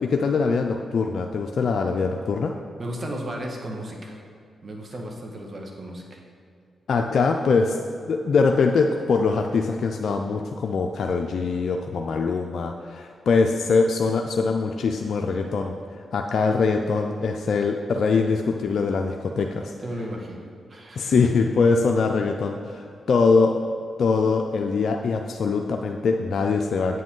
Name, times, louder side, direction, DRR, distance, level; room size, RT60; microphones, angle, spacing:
voice 1, 0.0-2.5 6.9-7.8 8.1-15.7 16.1-19.7 21.0-23.6 24.0-27.0, left 4 dB, 70° left, 3 dB, 0.4 m, -23 dB
voice 2, 2.8-4.2 4.6-6.2 19.8-21.2, right 1 dB, 50° right, 1 dB, 1.5 m, -34 dB
8.0 x 7.5 x 3.8 m, 2.3 s
supercardioid pair, 55°, 0 cm